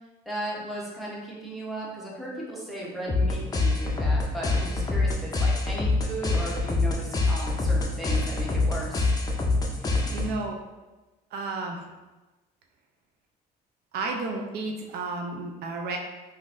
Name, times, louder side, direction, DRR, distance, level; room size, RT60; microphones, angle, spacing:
voice 1, 0.3-9.1, right 1 dB, ahead, -5 dB, 0.9 m, -36 dB
sound 1, 3.1-10.5, left 3 dB, 20° left, 0.5 m, -25 dB
voice 2, 9.8-10.6 11.3-11.9 13.9-16.0, right 3 dB, 70° right, 2 dB, 0.5 m, -32 dB
3.8 x 2.6 x 2.5 m, 1.1 s
cardioid pair, 110°, 17 cm